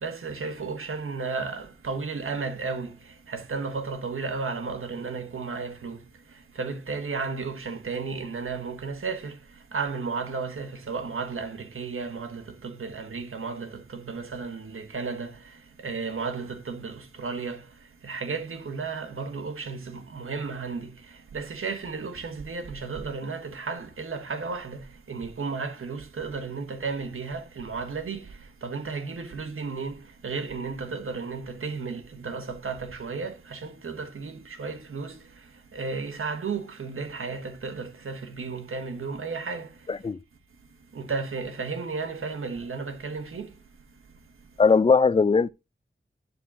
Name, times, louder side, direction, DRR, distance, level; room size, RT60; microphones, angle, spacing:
voice 1, 0.0-6.0 6.5-9.4 9.7-17.7 18.0-35.2 35.7-39.7 40.9-43.5, right 4 dB, 85° right, 1.5 m, -34 dB
voice 2, 39.9-40.2 44.6-45.5, left 5 dB, 25° left, 0.5 m, -19 dB
11.5 x 4.3 x 5.0 m
cardioid pair, 50°, 21 cm